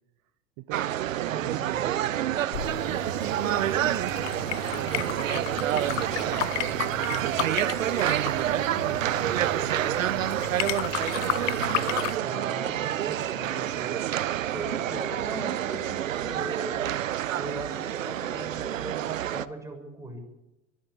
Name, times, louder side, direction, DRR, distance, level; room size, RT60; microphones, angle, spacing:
voice 1, 0.6-2.4 2.8-7.7 8.2-10.6, right 18 dB, 50° right, 15 dB, 0.9 m, -38 dB
sound 1, 0.7-19.5, right 12 dB, 85° right, 0.8 m, -28 dB
voice 2, 1.3-1.8 12.2-13.9 14.4-17.0 17.4-20.2, right 2 dB, 10° right, 3 dB, 6.6 m, -38 dB
sound 2, 2.5-12.2, left 19 dB, 70° left, 0.8 m, -34 dB
sound 3, 8.7-16.1, right 11 dB, 35° right, 1.1 m, -44 dB
22.5 x 15.0 x 8.5 m, 1.0 s
hypercardioid pair, 80°, 38 cm